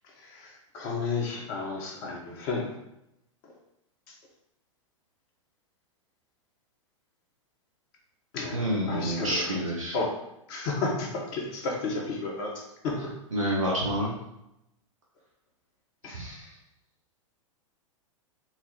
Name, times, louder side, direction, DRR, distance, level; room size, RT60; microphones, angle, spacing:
voice 1, 0.2-2.7 8.3-9.4 9.9-10.1 10.5-12.5 12.8-13.1 16.0-16.4, left 3 dB, 45° left, -1 dB, 1.0 m, -32 dB
voice 2, 8.5-10.0 13.3-14.1 16.1-16.5, equal, 75° right, -4 dB, 1.1 m, -28 dB
4.5 x 2.0 x 4.1 m, 0.85 s
figure-of-eight pair, 95°, 17 cm